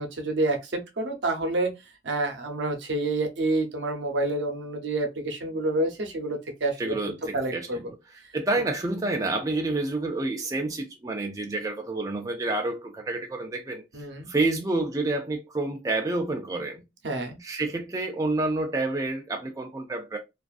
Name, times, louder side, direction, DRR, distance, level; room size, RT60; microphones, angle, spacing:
voice 1, 0.0-1.7 2.0-6.9 7.3-7.8 13.9-14.3 17.0-17.4, right 2 dB, 80° right, 0.7 m, -28 dB
voice 2, 6.8-8.0 8.3-13.8 14.3-16.8 17.4-20.2, right 2 dB, 20° right, 0.3 m, -28 dB
2.4 x 2.4 x 2.3 m
head